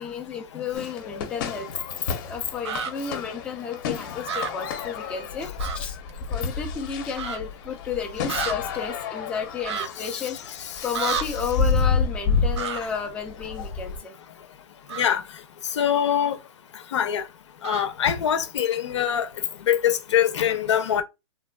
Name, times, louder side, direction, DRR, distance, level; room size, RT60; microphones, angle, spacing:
voice 1, 0.0-1.7 2.2-6.0 6.3-10.6 10.8-14.2, left 7 dB, 10° left, 0.4 m, -32 dB
sound 1, 0.7-14.0, left 5 dB, 45° left, 0.7 m, -30 dB
sound 2, 2.6-2.9 4.2-4.5 5.6-5.8 6.1-6.2 7.1-7.4 8.3-8.5 9.6-9.9 10.9-11.2 12.5-12.8 14.9-15.2 17.6-17.9, right 6 dB, 75° right, 0.6 m, -29 dB
voice 2, 15.8-16.4 16.9-17.2 17.6-19.3 19.7-21.0, left 9 dB, 85° left, 0.7 m, -23 dB
3.3 x 2.3 x 2.2 m
hypercardioid pair, 155°, 15 cm